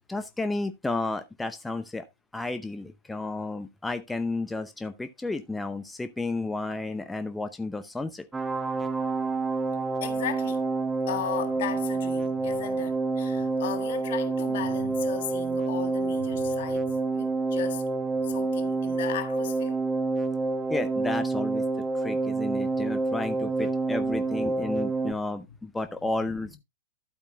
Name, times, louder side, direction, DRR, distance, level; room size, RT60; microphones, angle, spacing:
voice 1, 0.1-2.1 2.3-8.3 20.7-21.6 21.9-26.6, left 2 dB, 10° left, 0.7 m, -32 dB
sound 1, 8.3-25.1, right 3 dB, 10° right, 1.1 m, -28 dB
voice 2, 10.0-10.6 11.1-17.8 18.2-19.8 26.4-26.6, left 10 dB, 60° left, 1.7 m, -36 dB
12.0 x 8.4 x 2.3 m
figure-of-eight pair, 100°, 0 cm